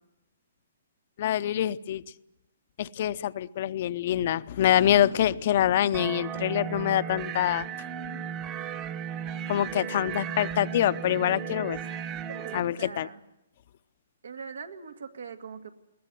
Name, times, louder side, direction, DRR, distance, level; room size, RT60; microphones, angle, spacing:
voice 1, 1.2-2.0 2.8-7.7 9.5-11.8 12.5-13.1, left 11 dB, 50° left, 14 dB, 0.7 m, -25 dB
sound 1, 5.9-12.6, right 8 dB, 25° right, 1.0 m, -35 dB
voice 2, 12.3-13.2 14.2-15.7, right 5 dB, 85° right, 7 dB, 2.2 m, -41 dB
21.5 x 18.0 x 9.3 m, 0.90 s
hypercardioid pair, 150°, 0 cm